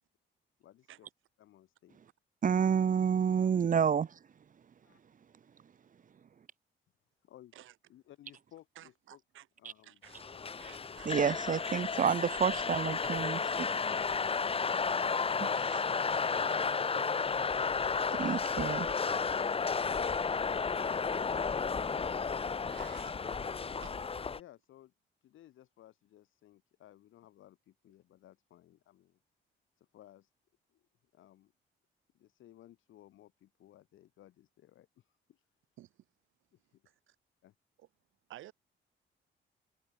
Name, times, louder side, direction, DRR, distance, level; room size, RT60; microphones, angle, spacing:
voice 1, 0.6-1.1 1.4-2.0 4.8-5.0 7.2-7.5 7.9-9.2 9.6-10.0 10.3-11.4 23.6-24.1 24.3-24.9 25.2-29.2 29.8-30.3 30.7-30.8 31.1-31.5 32.1-35.5 36.5-37.0 37.4-37.5, left 13 dB, 80° left, 6.8 m, -59 dB
voice 2, 2.4-4.1 11.0-13.7 18.2-18.9, right 7 dB, 40° right, 1.0 m, -29 dB
voice 3, 8.7-9.5 9.8-10.3 10.6-11.6 15.5-15.8 20.7-21.2 22.7-23.2 23.8-23.9 35.8-35.9 37.1-37.2 37.8-37.9 38.3-38.5, right 14 dB, 80° right, 3.2 m, -54 dB
sound 1, 10.1-24.4, left 5 dB, 30° left, 1.0 m, -33 dB
cardioid pair, 90°, 20 cm